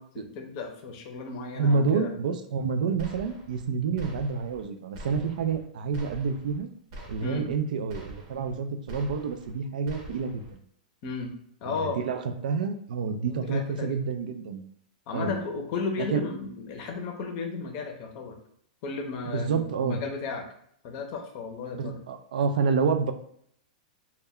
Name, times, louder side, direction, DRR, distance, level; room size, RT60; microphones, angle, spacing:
voice 1, 0.0-2.1 7.2-7.5 11.0-11.3 11.6-12.0 13.3-14.0 15.1-18.4 18.8-20.4 20.8-22.0, left 4 dB, 40° left, 3 dB, 0.6 m, -34 dB
voice 2, 1.5-6.7 7.1-10.6 11.7-14.6 15.1-15.3 16.0-16.2 19.3-20.0 21.7-23.1, right 5 dB, 80° right, 7 dB, 0.4 m, -28 dB
sound 1, 3.0-3.7 4.0-4.7 4.9-5.6 5.9-6.6 6.9-7.6 7.9-8.6 8.9-9.6 9.9-10.5, right 1 dB, 50° right, 0.7 m, -44 dB
2.2 x 2.1 x 3.5 m, 0.65 s
supercardioid pair, 150°, 4 cm